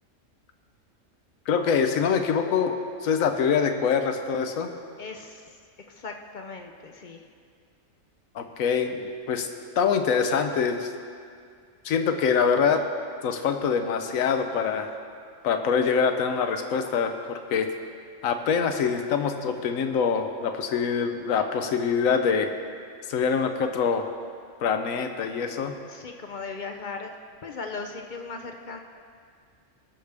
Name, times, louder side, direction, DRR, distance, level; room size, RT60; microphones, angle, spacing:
voice 1, 1.5-4.7 8.3-9.5 9.8-10.9 11.8-12.8 13.2-14.9 15.4-17.7 18.2-22.5 23.1-24.1 24.6-25.8, left 6 dB, 80° left, 7 dB, 1.2 m, -24 dB
voice 2, 5.0-5.6 5.9-7.2 25.9-27.1 27.4-28.8, left 4 dB, 55° left, 4 dB, 0.5 m, -38 dB
18.5 x 6.6 x 3.5 m, 2.2 s
omnidirectional pair, 1.4 m